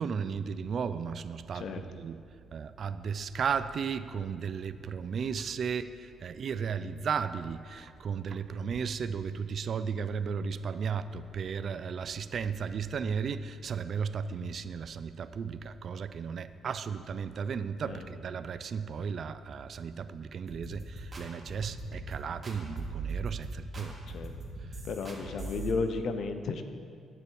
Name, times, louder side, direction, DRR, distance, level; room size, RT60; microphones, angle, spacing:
voice 1, 0.0-2.2 2.5-24.0, right 6 dB, 55° right, 13 dB, 0.4 m, -35 dB
voice 2, 17.8-18.1 23.8-24.3 24.8-26.6, left 4 dB, 65° left, 8 dB, 0.7 m, -34 dB
sound 1, 20.5-25.7, right 3 dB, 25° right, 2.2 m, -40 dB
9.8 x 8.3 x 4.6 m, 2.3 s
cardioid pair, 90°, 0 cm